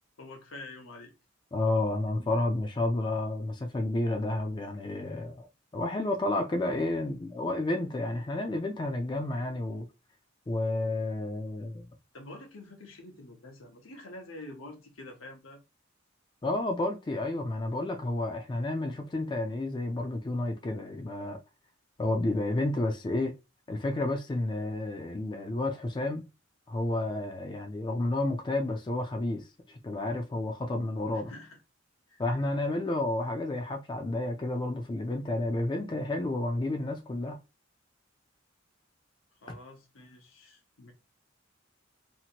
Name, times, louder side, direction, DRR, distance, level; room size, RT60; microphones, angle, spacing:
voice 1, 0.2-1.1 12.1-15.6 31.1-31.6 32.1-32.2 39.4-40.9, left 2 dB, 80° left, 0.9 m, -47 dB
voice 2, 1.5-5.5 5.7-9.9 10.5-11.9 16.4-21.4 22.0-23.3 23.7-26.3 26.7-31.3 32.2-37.4, left 2 dB, 25° left, 0.4 m, -31 dB
2.9 x 2.5 x 2.8 m
head